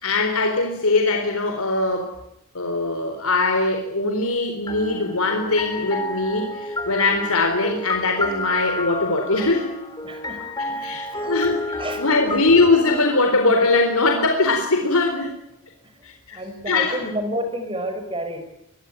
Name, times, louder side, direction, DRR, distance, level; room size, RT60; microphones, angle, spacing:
voice 1, 0.0-2.1 2.5-9.7 10.8-15.4 16.0-16.4 16.7-17.1, left 3 dB, 80° left, 3 dB, 4.0 m, -21 dB
sound 1, 4.7-14.5, left 2 dB, 20° left, 3.2 m, -31 dB
voice 2, 10.0-10.4 10.7-11.4 11.8-12.0 16.3-18.4, right 1 dB, 25° right, 7 dB, 5.9 m, -30 dB
24.0 x 21.5 x 9.1 m, 0.85 s
head